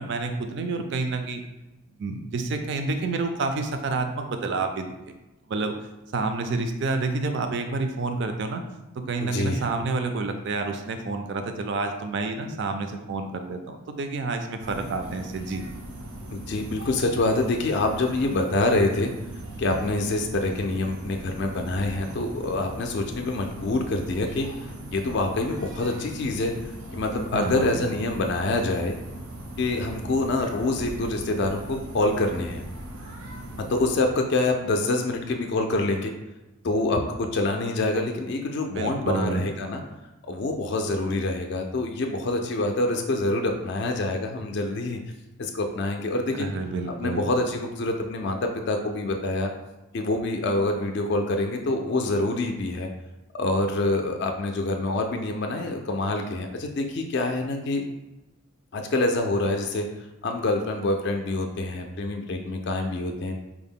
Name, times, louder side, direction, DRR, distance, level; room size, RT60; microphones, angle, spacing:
voice 1, 0.0-1.4 2.0-4.9 5.5-5.7 6.1-8.6 9.0-15.6 27.3-27.8 38.8-39.4 46.4-47.3, right 3 dB, 55° right, 6 dB, 0.4 m, -29 dB
voice 2, 9.2-9.7 16.3-19.1 19.6-26.5 26.9-29.0 29.6-32.6 33.7-36.1 36.6-39.8 40.3-45.0 45.4-46.5 47.0-49.5 49.9-52.9 53.3-57.8 58.7-59.9 60.2-63.3, left 2 dB, 50° left, 4 dB, 0.3 m, -26 dB
sound 1, 14.6-33.9, right 1 dB, 80° right, 0.7 m, -39 dB
4.5 x 2.1 x 3.6 m, 1.0 s
head